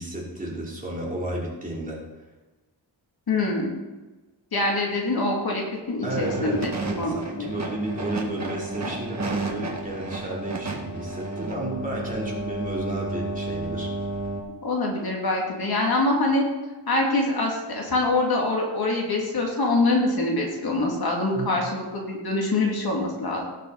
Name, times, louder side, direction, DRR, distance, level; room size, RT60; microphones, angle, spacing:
voice 1, 0.0-2.0 6.0-13.9 21.3-21.5, right 1 dB, 20° right, -4 dB, 3.2 m, -32 dB
voice 2, 3.3-3.7 4.5-6.7 7.0-7.5 14.6-16.4 16.9-23.4, left 2 dB, 60° left, -1 dB, 2.5 m, -24 dB
sound 1, 6.0-14.4, right 2 dB, 40° right, 1.8 m, -32 dB
17.5 x 6.7 x 4.0 m, 1.2 s
wide cardioid pair, 135°, 43 cm